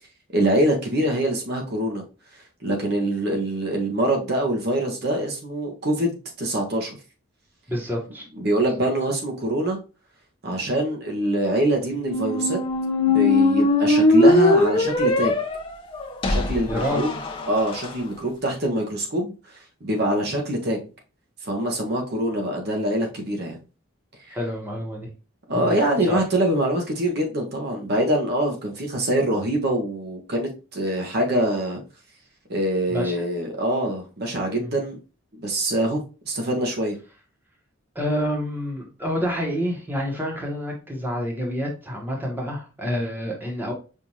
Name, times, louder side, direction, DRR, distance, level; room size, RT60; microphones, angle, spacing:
voice 1, 0.3-2.0 2.6-6.1 6.4-7.0 8.4-9.8 10.4-12.6 13.1-15.3 16.3-17.1 17.5-19.3 19.8-20.8 21.4-23.6 25.5-31.8 32.5-35.0 35.3-37.0, right 1 dB, 50° right, 1 dB, 0.9 m, -24 dB
voice 2, 7.7-8.2 16.7-17.0 24.3-25.1 25.5-25.7 26.1-26.2 32.9-33.1 34.6-34.7 37.9-43.7, equal, 10° right, -1 dB, 1.1 m, -28 dB
sound 1, 11.9-17.9, left 2 dB, 25° left, 0.6 m, -20 dB
5.5 x 2.5 x 3.0 m, 0.33 s
head